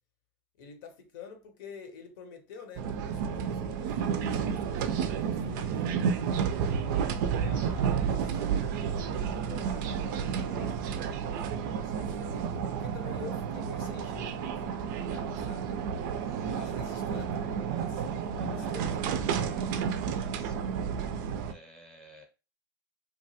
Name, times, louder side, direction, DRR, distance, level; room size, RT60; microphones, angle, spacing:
voice 1, 0.6-6.1 7.2-8.5 8.9-11.2 11.8-15.7 16.5-19.0 20.3-21.3, left 5 dB, 65° left, 0.7 m, -48 dB
sound 1, 2.8-21.5, right 7 dB, 60° right, 0.4 m, -31 dB
voice 2, 6.6-7.2 16.3-16.8 18.3-20.6 21.5-22.3, right 1 dB, 5° left, 0.7 m, -54 dB
2.9 x 2.3 x 2.7 m
supercardioid pair, 125°, 12 cm